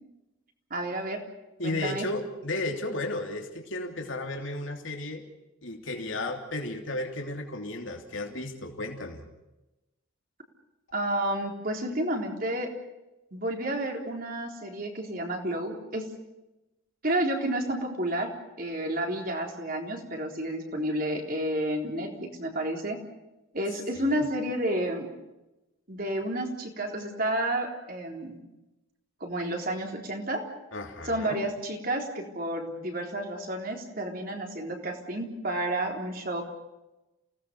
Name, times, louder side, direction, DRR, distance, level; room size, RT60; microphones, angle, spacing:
voice 1, 0.7-1.2 1.6-2.1 10.9-12.7 13.3-16.0 17.0-18.3 18.6-23.0 23.5-25.1 25.9-28.4 29.2-30.4 31.0-36.4, right 1 dB, 40° right, 2 dB, 3.8 m, -31 dB
voice 2, 1.6-5.2 5.6-9.2 23.9-24.3 30.7-31.4, left 2 dB, 65° left, 3 dB, 3.1 m, -34 dB
29.0 x 18.0 x 6.8 m, 0.99 s
head